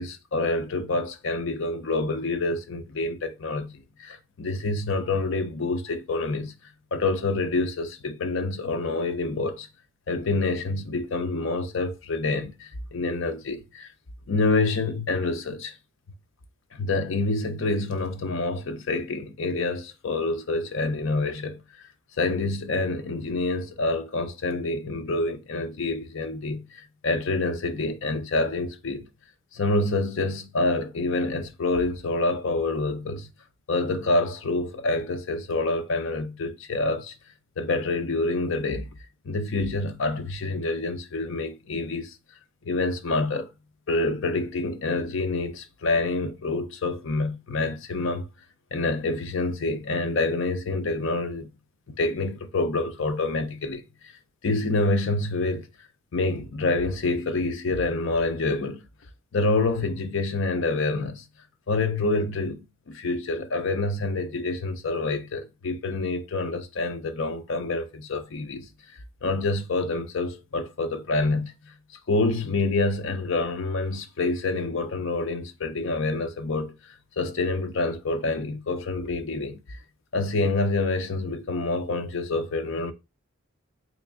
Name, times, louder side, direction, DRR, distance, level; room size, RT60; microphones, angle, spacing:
voice 1, 0.0-6.5 6.9-9.7 10.1-13.9 14.3-15.8 16.7-21.6 22.2-29.1 29.5-33.3 33.7-37.1 37.6-38.9 39.2-42.1 42.7-43.5 43.9-48.3 48.7-51.5 51.9-53.8 54.4-55.7 56.1-58.9 59.3-61.2 61.7-68.7 69.2-71.7 72.1-76.7 77.2-79.8 80.1-82.9, left 2 dB, 60° left, 0.5 m, -27 dB
3.3 x 2.9 x 3.6 m
head